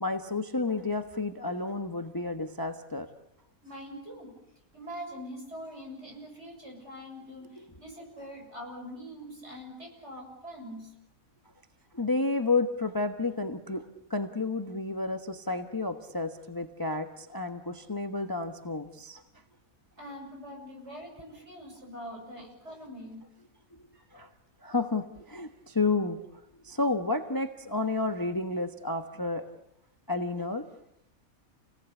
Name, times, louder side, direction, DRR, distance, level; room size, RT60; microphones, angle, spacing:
voice 1, 0.0-3.1 11.9-19.2 23.8-23.9 24.1-24.3 24.6-26.2 26.6-29.5 30.1-30.6, left 3 dB, 15° left, 7 dB, 1.1 m, -31 dB
voice 2, 3.6-4.3 4.7-10.9 20.0-23.3 23.9-24.1, equal, 50° right, 1 dB, 7.4 m, -43 dB
29.5 x 18.5 x 8.3 m, 0.81 s
omnidirectional pair, 1.5 m